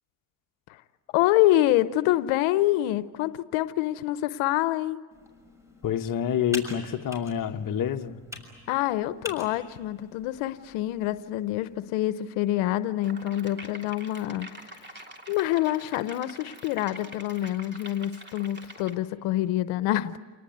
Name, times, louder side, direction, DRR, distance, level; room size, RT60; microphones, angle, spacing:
voice 1, 1.1-5.0 8.7-14.9 15.3-20.2, left 14 dB, 85° left, 0.9 m, -26 dB
Computer keyboard, 5.1-11.9, left 1 dB, 5° right, 6.4 m, -45 dB
voice 2, 5.8-8.2, left 9 dB, 45° left, 1.3 m, -27 dB
sound 1, 13.0-19.0, right 1 dB, 25° right, 3.1 m, -45 dB
28.0 x 19.0 x 9.4 m
cardioid pair, 95°, 47 cm